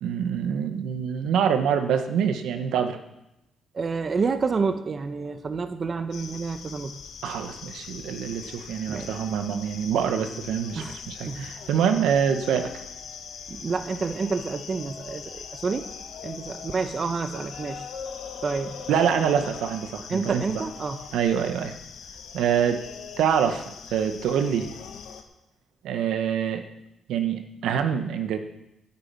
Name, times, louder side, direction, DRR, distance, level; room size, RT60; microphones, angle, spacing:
voice 1, 0.0-3.0 7.2-12.8 18.9-20.4 21.1-21.8 22.3-22.8 23.2-24.7 25.8-26.6 27.1-28.4, right 8 dB, 80° right, 7 dB, 1.2 m, -25 dB
voice 2, 3.7-7.0 8.4-8.5 8.9-9.2 10.8-11.0 11.3-11.5 13.5-15.9 16.2-17.9 18.4-19.3 20.1-21.0, right 4 dB, 40° right, 9 dB, 1.0 m, -29 dB
sound 1, 6.1-25.2, left 6 dB, 75° left, 1.6 m, -41 dB
10.0 x 8.8 x 8.9 m, 0.87 s
cardioid pair, 90°, 0 cm